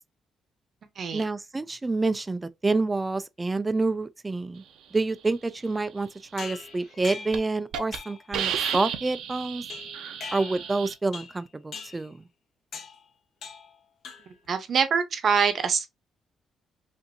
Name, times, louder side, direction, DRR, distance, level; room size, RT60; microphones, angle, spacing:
voice 1, 1.1-4.6 4.9-9.6 10.3-12.3, right 3 dB, 15° right, 0.3 m, -28 dB
sound 1, 6.4-7.5 7.9-8.3 8.6-9.0 9.7-10.8 11.1-11.4 11.7-12.1 12.7-13.0 13.4-13.7 14.0-14.5, left 5 dB, 60° left, 1.0 m, -41 dB
Hiss, 6.7-6.9 7.3-7.4 7.7-8.0 8.3-10.9, right 8 dB, 85° right, 0.7 m, -32 dB
voice 2, 14.5-15.9, right 6 dB, 45° right, 0.7 m, -24 dB
5.2 x 2.6 x 2.6 m
cardioid pair, 145°, 0 cm